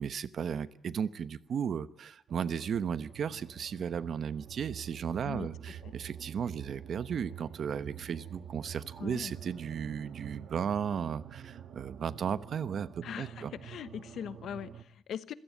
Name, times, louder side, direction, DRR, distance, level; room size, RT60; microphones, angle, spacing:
voice 1, 0.0-13.5, right 7 dB, 55° right, 14 dB, 1.0 m, -35 dB
sound 1, 2.3-14.8, right 9 dB, 70° right, 1.7 m, -47 dB
voice 2, 9.0-9.3 13.0-15.3, left 9 dB, 85° left, 14 dB, 1.1 m, -41 dB
27.0 x 16.5 x 8.4 m, 0.80 s
wide cardioid pair, 160°, 0 cm